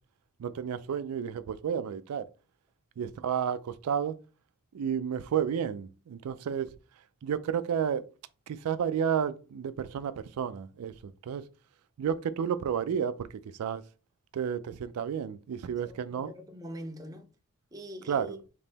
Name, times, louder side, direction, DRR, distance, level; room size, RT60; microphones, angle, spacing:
voice 1, 0.4-2.3 3.0-4.2 4.7-6.7 7.2-8.0 8.5-11.4 12.0-13.8 14.3-16.3 18.1-18.3, right 8 dB, 85° right, 0.4 m, -31 dB
voice 2, 15.9-17.3 17.7-18.4, equal, 15° right, 0.6 m, -43 dB
3.7 x 2.8 x 4.0 m
head